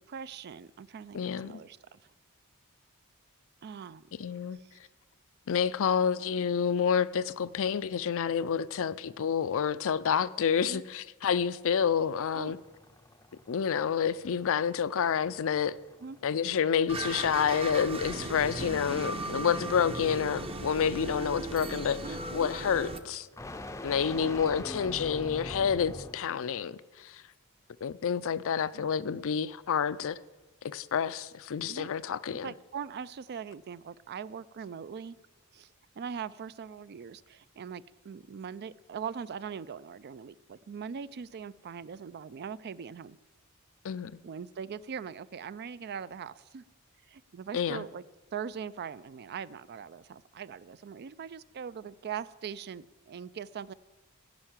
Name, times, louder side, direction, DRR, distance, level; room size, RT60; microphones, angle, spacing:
voice 1, 0.0-2.1 3.6-4.8 10.7-10.8 12.4-12.5 16.0-16.2 18.7-19.0 22.0-22.2 24.1-24.3 28.7-29.0 31.7-31.9 32.4-35.2 35.5-43.2 44.2-46.6 47.1-48.0 48.3-53.7, right 7 dB, 50° right, 0.4 m, -41 dB
voice 2, 1.1-1.6 4.2-4.6 5.5-12.6 13.5-15.7 16.2-22.0 22.3-23.3 23.8-27.2 27.8-30.2 30.6-32.5 43.8-44.2 47.5-47.8, left 7 dB, 65° left, 0.5 m, -29 dB
sound 1, 11.8-26.4, left 1 dB, 15° left, 0.5 m, -46 dB
sound 2, 16.9-23.0, right 2 dB, 25° right, 0.7 m, -37 dB
16.0 x 5.7 x 8.9 m
head